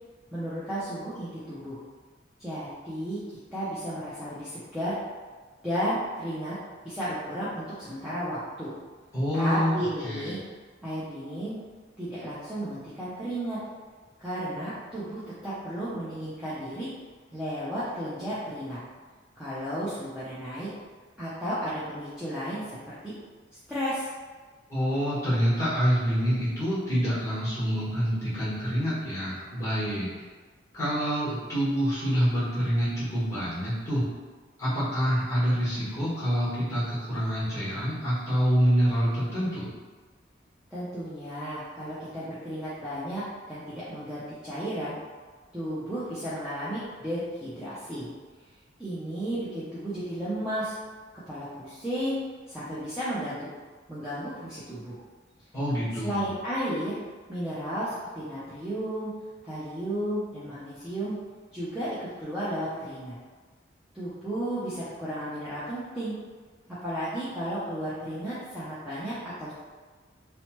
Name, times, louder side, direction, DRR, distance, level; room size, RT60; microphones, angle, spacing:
voice 1, 0.3-1.8 2.4-5.0 5.6-6.6 6.8-8.7 9.3-10.4 10.8-11.6 12.0-13.6 14.2-16.9 17.3-18.8 19.4-20.7 21.2-23.1 23.7-24.1 40.7-45.0 45.5-48.1 48.8-50.8 51.3-52.2 52.5-53.5 53.9-55.0 56.0-57.0 57.3-59.1 59.4-61.2 61.5-63.2 63.9-66.2 66.8-69.5, equal, 5° right, -12 dB, 0.4 m, -33 dB
voice 2, 9.1-10.4 24.7-30.1 30.7-34.1 34.6-39.7 55.5-56.3, equal, 15° left, -10 dB, 1.1 m, -26 dB
2.9 x 2.1 x 2.9 m, 1.4 s
head